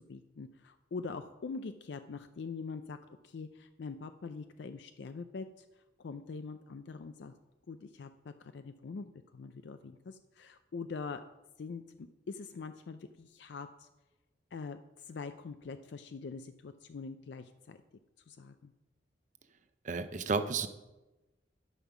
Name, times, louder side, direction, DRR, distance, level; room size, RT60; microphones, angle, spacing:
voice 1, 0.0-3.0 3.2-5.7 6.0-7.3 7.7-11.2 11.6-13.9 14.5-17.8 18.3-18.7, left 4 dB, 65° left, 9 dB, 0.4 m, -43 dB
voice 2, 19.8-20.7, right 4 dB, 40° right, 10 dB, 0.6 m, -32 dB
12.0 x 5.6 x 5.9 m, 1.1 s
head